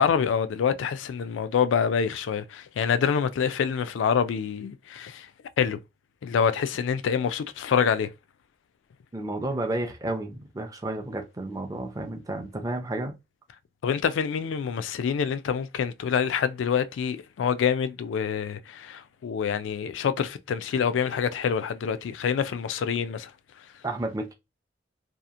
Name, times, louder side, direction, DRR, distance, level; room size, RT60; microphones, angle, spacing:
voice 1, 0.0-5.3 5.6-5.8 6.2-8.1 13.8-23.3, left 7 dB, 75° left, 0.3 m, -26 dB
voice 2, 9.1-13.1 23.8-24.3, right 2 dB, 20° right, 0.4 m, -31 dB
2.8 x 2.4 x 2.4 m
head